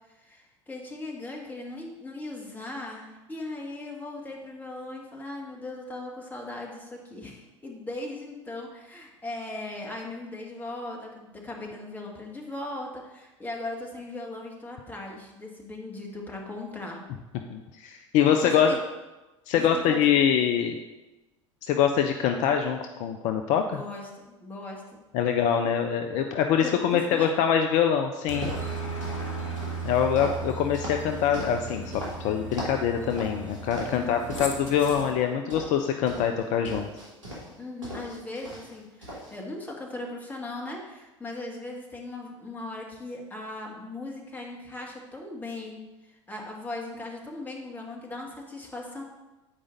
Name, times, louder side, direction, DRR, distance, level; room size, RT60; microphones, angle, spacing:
voice 1, 0.1-17.0 18.2-18.8 19.5-20.3 23.7-24.8 26.6-27.3 33.9-34.4 37.6-49.0, left 2 dB, 10° left, -1 dB, 1.7 m, -38 dB
voice 2, 17.5-18.8 19.5-20.8 21.6-23.8 25.1-28.5 29.8-36.9, left 8 dB, 50° left, 5 dB, 0.5 m, -24 dB
sound 1, 28.2-29.2 29.6-32.1 32.5-32.8 33.1-34.0 34.3-35.1 35.5-37.5 37.8-38.8 39.0-39.3, equal, 85° right, 2.4 m, -38 dB
Aircraft, 28.3-35.1, right 3 dB, 80° left, 1.2 m, -36 dB
8.6 x 4.9 x 4.0 m, 1.1 s
figure-of-eight pair, 75°, 16 cm